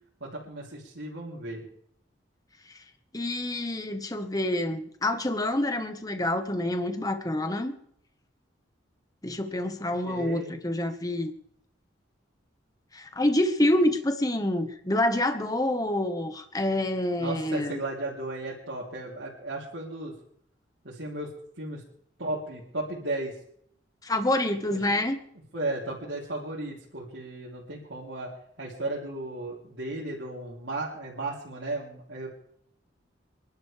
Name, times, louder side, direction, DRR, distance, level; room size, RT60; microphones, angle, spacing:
voice 1, 0.2-1.6 10.0-10.5 17.2-20.1 20.8-21.3 21.6-21.8 22.2-23.3 24.7-24.8 25.5-28.3 28.6-32.3, right 2 dB, 75° right, -6 dB, 3.4 m, -35 dB
voice 2, 3.1-7.7 9.2-11.3 12.9-17.8 24.0-25.2, left 1 dB, 20° left, 7 dB, 1.3 m, -27 dB
28.0 x 12.0 x 3.4 m, 0.68 s
head